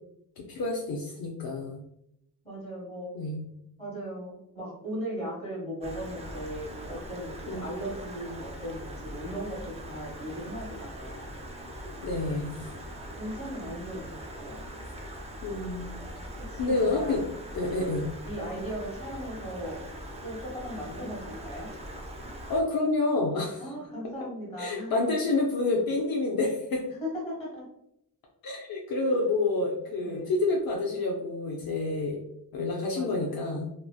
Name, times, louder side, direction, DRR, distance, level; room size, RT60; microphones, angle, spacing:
voice 1, 0.4-1.8 3.1-3.4 7.5-7.7 12.0-12.6 15.4-16.0 16.6-17.2 17.5-18.1 22.5-23.7 24.6-26.8 28.4-32.2 32.5-33.7, left 2 dB, 65° left, -1 dB, 0.5 m, -28 dB
voice 2, 2.4-3.1 3.8-11.4 13.2-14.6 16.5-17.2 18.2-19.8 20.2-21.7 23.6-25.2 27.0-27.6 30.0-30.3 32.9-33.4, equal, 15° left, -6 dB, 1.4 m, -38 dB
Stream, 5.8-22.6, equal, 20° right, 0.3 m, -41 dB
3.0 x 2.1 x 2.2 m, 0.78 s
wide cardioid pair, 110°, 38 cm